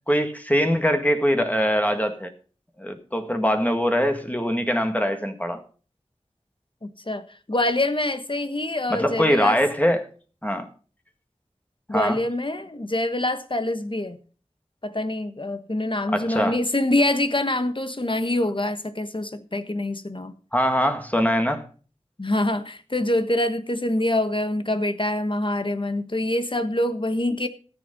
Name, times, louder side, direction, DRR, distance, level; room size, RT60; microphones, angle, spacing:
voice 1, 0.1-2.3 2.8-5.6 8.9-10.1 10.4-10.7 11.9-12.2 16.1-16.6 20.5-21.6, equal, 15° left, 1.7 m, -22 dB
voice 2, 6.8-9.6 11.9-14.2 14.8-20.3 22.2-27.5, left 1 dB, 45° left, 1.3 m, -25 dB
13.5 x 8.1 x 5.3 m
wide cardioid pair, 45°, 12 cm